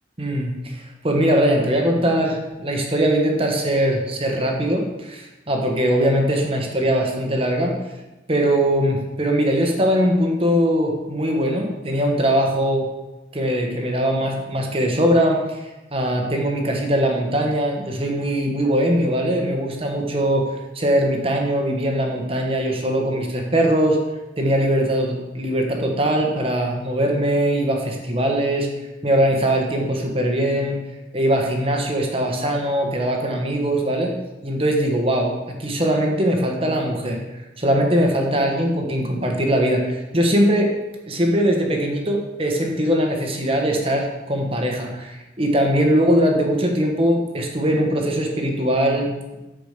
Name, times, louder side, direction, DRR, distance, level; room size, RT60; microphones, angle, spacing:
voice 1, 0.2-7.7 8.3-12.9 13.3-15.6 15.9-20.5 20.7-24.0 24.4-28.7 29.0-30.8 31.1-34.1 34.4-35.3 35.6-37.2 37.6-40.7 41.1-49.4, equal, 30° right, 2 dB, 1.3 m, -21 dB
8.3 x 5.1 x 6.7 m, 1.0 s
head